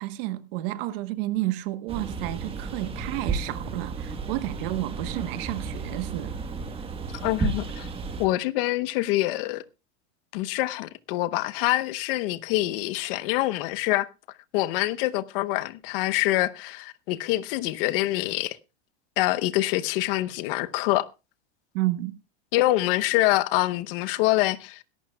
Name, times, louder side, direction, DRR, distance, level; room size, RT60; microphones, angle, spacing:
voice 1, 0.0-6.4 21.7-22.2, right 17 dB, 60° right, 1.2 m, -31 dB
sound 1, 1.9-8.3, right 4 dB, 15° right, 1.4 m, -33 dB
voice 2, 7.1-7.9 8.2-9.6 10.3-14.1 14.5-18.6 19.2-21.1 22.5-24.8, left 17 dB, 55° left, 0.9 m, -25 dB
21.5 x 11.5 x 2.3 m
supercardioid pair, 140°, 33 cm